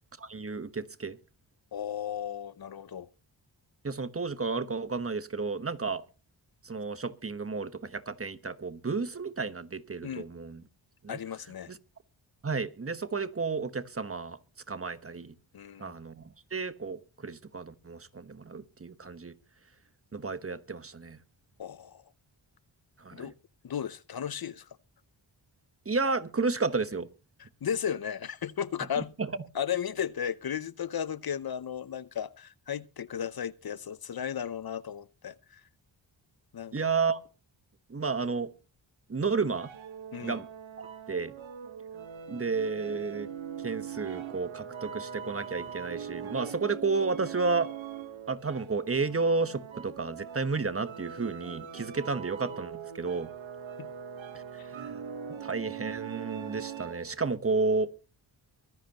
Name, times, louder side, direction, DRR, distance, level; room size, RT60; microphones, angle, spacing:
voice 1, 0.2-1.2 3.8-6.0 6.6-10.6 11.0-11.2 11.7-11.8 12.4-14.4 14.7-15.3 15.8-19.4 20.1-21.2 23.0-23.3 25.8-27.1 29.2-29.3 36.7-37.2 37.9-38.5 39.1-39.7 40.2-40.5 40.8-41.3 42.3-43.3 43.6-47.7 48.3-53.3 54.3-54.4 54.8-55.0 55.4-57.9, right 4 dB, 30° right, 1.2 m, -32 dB
voice 2, 1.7-3.1 10.0-10.2 11.1-11.7 15.5-15.9 21.6-22.0 23.1-23.3 23.6-24.7 27.4-29.1 29.5-35.6 36.5-36.9 40.1-40.4 53.8-53.9 54.6-54.7, left 8 dB, 50° left, 0.7 m, -35 dB
sound 1, 39.5-57.2, right 8 dB, 80° right, 1.3 m, -41 dB
24.0 x 10.5 x 2.9 m
cardioid pair, 75°, 46 cm